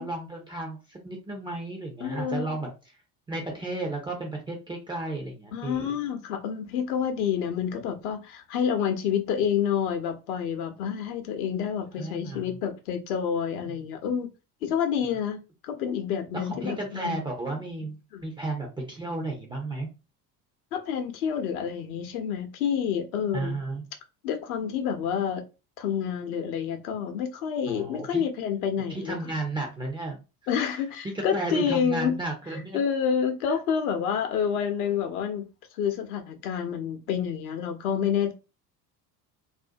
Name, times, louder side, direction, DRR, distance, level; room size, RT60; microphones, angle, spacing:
voice 1, 0.0-2.7 3.3-5.9 12.0-12.6 16.3-19.9 23.3-23.8 27.7-28.2 28.9-30.2 31.1-32.8, right 2 dB, 10° right, 0.3 m, -33 dB
voice 2, 2.0-2.6 5.5-14.3 14.6-17.2 18.1-18.2 20.7-23.5 24.2-25.4 25.8-29.2 30.5-32.2 32.7-35.5 35.8-38.3, left 8 dB, 65° left, 0.7 m, -28 dB
2.5 x 2.1 x 2.5 m
figure-of-eight pair, 60°, 48 cm